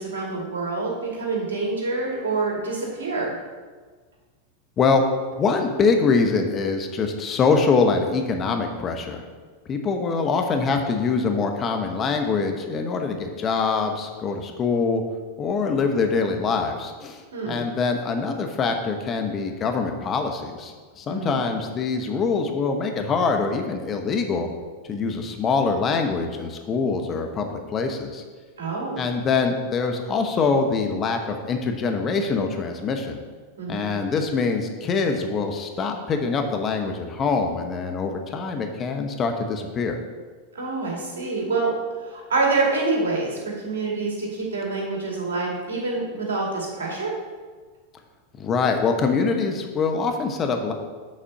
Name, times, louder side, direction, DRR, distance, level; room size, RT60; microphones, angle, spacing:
voice 1, 0.0-3.3 17.3-17.6 21.1-21.4 28.6-29.0 33.6-33.9 40.5-41.7 42.0-47.1, right 3 dB, 80° right, -1 dB, 2.5 m, -26 dB
voice 2, 5.4-9.2 9.7-15.0 15.4-24.5 24.9-28.2 29.0-33.2 33.7-40.0 48.4-50.7, left 4 dB, 30° left, 4 dB, 1.0 m, -24 dB
7.4 x 4.3 x 6.6 m, 1.4 s
hypercardioid pair, 100°, 0 cm